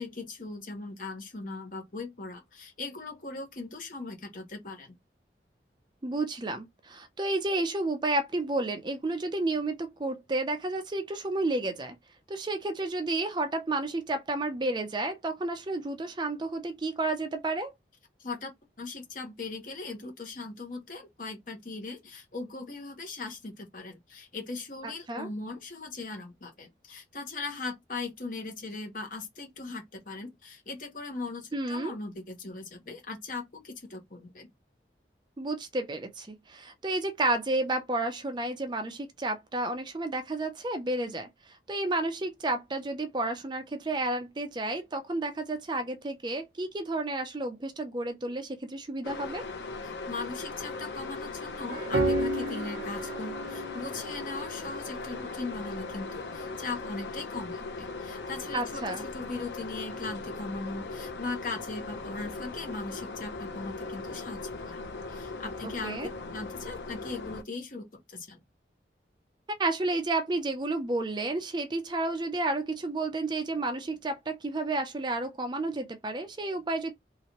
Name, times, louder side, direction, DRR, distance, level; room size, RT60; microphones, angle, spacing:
voice 1, 0.0-4.9 18.2-18.5 18.8-34.5 49.8-66.0 66.3-68.4, left 3 dB, 50° left, 1.1 m, -39 dB
voice 2, 6.0-12.0 12.3-17.7 24.8-25.3 31.5-32.0 35.4-49.5 58.5-59.0 65.8-66.1 69.6-76.9, right 2 dB, 25° right, 0.5 m, -31 dB
sound 1, 49.0-67.4, left 3 dB, 75° left, 0.7 m, -39 dB
sound 2, 51.7-56.7, right 1 dB, 85° right, 0.8 m, -33 dB
3.2 x 2.9 x 2.9 m
head